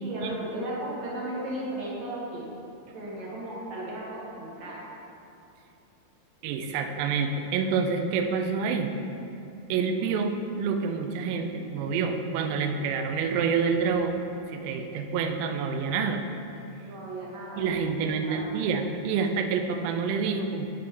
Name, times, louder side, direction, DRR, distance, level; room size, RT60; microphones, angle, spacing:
voice 1, 0.0-2.4 2.9-4.9 16.8-17.7 18.2-18.7, right 1 dB, 60° right, -6 dB, 2.1 m, -35 dB
voice 2, 6.4-8.9 9.7-16.2 17.6-20.7, right 5 dB, 85° right, 5 dB, 2.1 m, -27 dB
11.0 x 5.2 x 3.4 m, 2.7 s
omnidirectional pair, 4.9 m